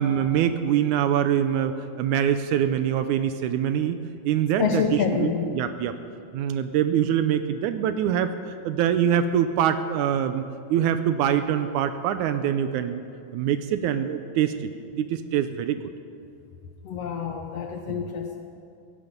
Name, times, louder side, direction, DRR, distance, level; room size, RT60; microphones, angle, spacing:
voice 1, 0.0-4.0 4.3-4.8 5.1-5.9 6.3-10.4 10.7-13.0 13.3-15.8 17.9-18.0, right 9 dB, 80° right, 10 dB, 2.0 m, -24 dB
voice 2, 4.6-5.4 16.8-18.4, left 6 dB, 70° left, 4 dB, 1.5 m, -27 dB
17.0 x 15.5 x 5.3 m, 2.5 s
omnidirectional pair, 3.7 m